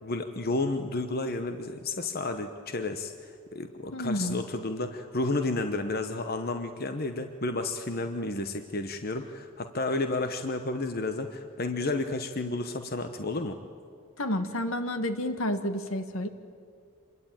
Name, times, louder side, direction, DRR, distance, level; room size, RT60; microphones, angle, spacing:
voice 1, 0.0-13.6, left 2 dB, 45° left, 7 dB, 1.0 m, -31 dB
voice 2, 3.9-4.4 14.2-16.3, left 1 dB, 75° left, 8 dB, 1.7 m, -30 dB
27.0 x 22.0 x 9.1 m, 2.3 s
head